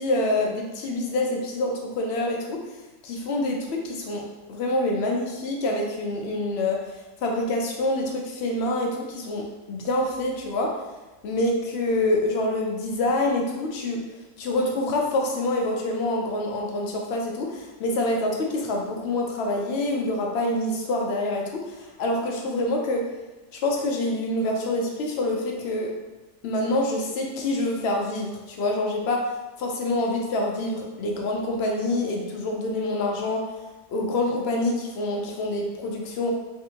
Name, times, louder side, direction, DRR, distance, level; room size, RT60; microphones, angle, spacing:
voice 1, 0.0-2.6 3.0-4.2 4.5-10.8 11.2-14.0 14.4-23.1 23.5-25.9 26.4-29.3 29.6-33.4 33.9-36.3, left 1 dB, 65° left, 0 dB, 0.6 m, -26 dB
3.6 x 2.5 x 2.8 m, 1.1 s
omnidirectional pair, 1.6 m